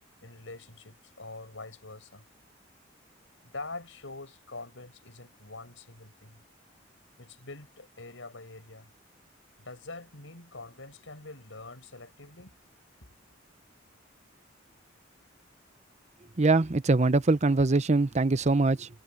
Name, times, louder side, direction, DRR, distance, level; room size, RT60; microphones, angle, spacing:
voice 1, 0.2-2.2 3.4-6.4 7.2-8.9 9.6-12.6 13.0-13.2, left 3 dB, 80° left, 5.2 m, -45 dB
voice 2, 16.4-18.9, right 3 dB, 35° right, 0.7 m, -23 dB
head